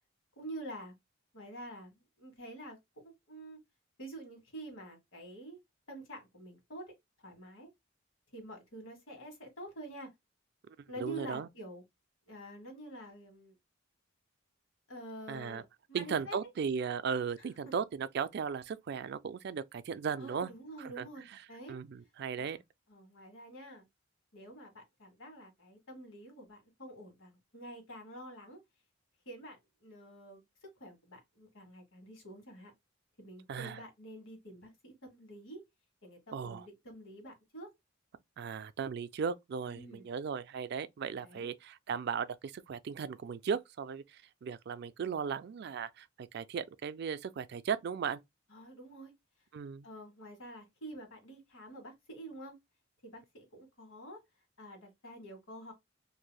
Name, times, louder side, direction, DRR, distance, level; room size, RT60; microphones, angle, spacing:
voice 1, 0.4-0.9 1.3-2.8 3.0-3.6 4.0-5.6 5.9-6.9 7.2-7.7 8.3-10.1 10.9-11.8 12.3-13.6 14.9-16.4 17.4-17.7 20.2-21.8 22.4-22.6 22.9-23.9 24.3-28.6 29.2-32.7 33.2-35.6 36.0-37.7 39.7-40.1 41.2-41.5 48.5-49.1 49.8-52.6 53.0-54.2 54.6-55.7, right 1 dB, 85° left, 1.5 m, -48 dB
voice 2, 11.0-11.5 15.3-15.6 15.9-20.5 20.8-21.1 21.7-22.6 33.5-33.8 36.3-36.7 38.4-48.2 49.5-49.9, right 6 dB, 55° right, 0.3 m, -37 dB
3.3 x 2.6 x 2.2 m
head